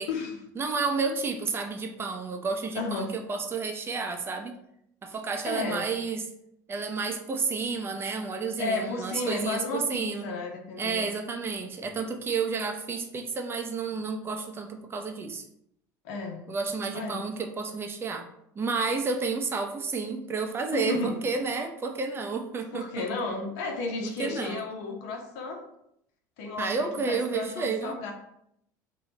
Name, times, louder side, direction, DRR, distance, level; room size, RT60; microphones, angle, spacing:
voice 1, 0.6-4.5 5.0-6.2 6.7-10.2 10.8-15.4 16.5-18.2 18.6-22.9 24.2-24.6 26.6-27.9, right 4 dB, 25° right, 4 dB, 0.5 m, -31 dB
voice 2, 2.7-3.2 5.4-5.9 8.6-11.1 16.0-16.4 16.9-17.3 20.7-21.2 22.7-25.6 26.4-28.1, left 3 dB, 70° left, 3 dB, 0.8 m, -33 dB
3.1 x 2.3 x 4.0 m, 0.75 s
hypercardioid pair, 85°, 10 cm